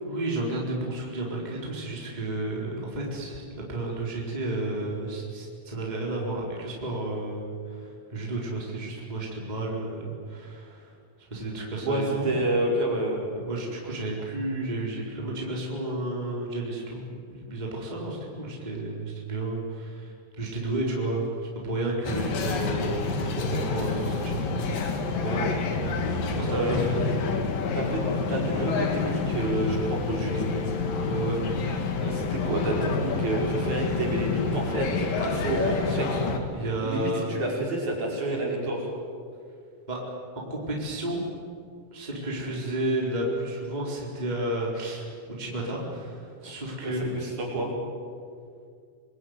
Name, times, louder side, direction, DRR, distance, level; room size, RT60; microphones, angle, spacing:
voice 1, 0.0-3.4 3.7-12.3 13.3-24.9 25.2-26.9 31.0-31.4 31.6-31.8 36.5-37.3 39.9-40.0 40.3-41.2 41.9-45.1 45.4-47.2, right 2 dB, 10° right, -2 dB, 4.1 m, -32 dB
voice 2, 11.8-13.3 26.5-26.8 27.7-30.5 32.0-36.3 36.8-38.9 46.4-46.5 46.8-46.9 47.2-47.7, right 1 dB, 50° right, -2 dB, 6.8 m, -29 dB
sound 1, 22.1-36.4, left 4 dB, 70° left, 3.8 m, -28 dB
27.0 x 21.5 x 9.6 m, 2.2 s
omnidirectional pair, 4.2 m